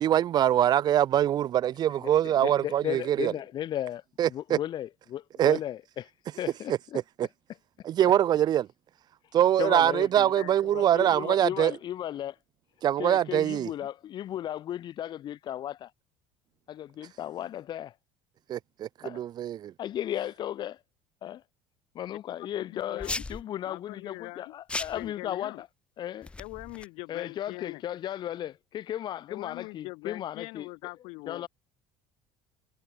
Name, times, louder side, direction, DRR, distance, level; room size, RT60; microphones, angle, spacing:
voice 1, 0.0-3.3 4.2-4.6 5.4-5.6 6.7-6.8 7.2-7.3 7.8-8.7 9.3-11.7 12.8-13.7 18.5-19.7, right 11 dB, 40° right, 0.5 m, -24 dB
voice 2, 2.0-4.0 4.3-6.1 6.4-7.0 9.6-10.3 10.6-12.3 13.0-15.9 16.7-17.9 19.0-19.2 19.8-20.8 21.2-21.4 21.9-25.7 26.0-26.3 27.1-30.7 31.3-31.5, left 11 dB, 45° left, 1.3 m, -35 dB
voice 3, 22.6-23.2 23.7-24.5 24.9-25.6 26.4-27.8 29.3-31.5, left 27 dB, 75° left, 1.7 m, -42 dB
sound 1, 23.0-23.4 24.7-25.1 26.2-26.9, left 3 dB, 10° left, 0.5 m, -35 dB
cardioid pair, 125°, 11 cm